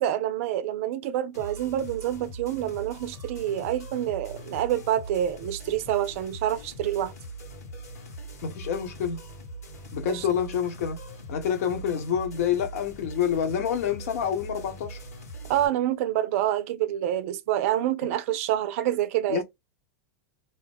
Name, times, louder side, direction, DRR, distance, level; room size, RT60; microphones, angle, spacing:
voice 1, 0.0-7.1 10.1-10.2 15.5-19.4, right 12 dB, 65° right, 0.4 m, -27 dB
sound 1, 1.3-15.7, right 1 dB, 90° left, 1.6 m, -42 dB
voice 2, 8.4-9.2 9.9-11.0 11.3-15.0 19.3-19.4, left 8 dB, 70° left, 1.1 m, -27 dB
2.8 x 2.2 x 3.4 m
hypercardioid pair, 110°, 8 cm